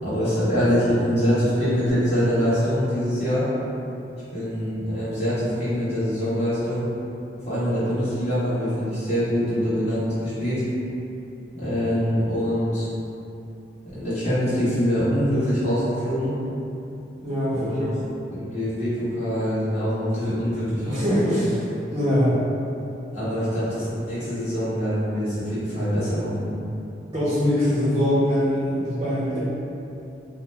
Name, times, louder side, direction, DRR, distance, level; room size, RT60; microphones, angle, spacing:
voice 1, 0.0-3.5 4.3-6.9 7.4-10.6 11.5-12.9 14.0-16.3 17.5-17.8 18.3-21.4 23.1-26.5, equal, 40° left, -14 dB, 1.4 m, -24 dB
voice 2, 17.2-17.9 20.8-21.5 21.9-22.4 27.1-29.4, equal, 30° right, -11 dB, 0.6 m, -22 dB
2.9 x 2.1 x 3.3 m, 2.8 s
head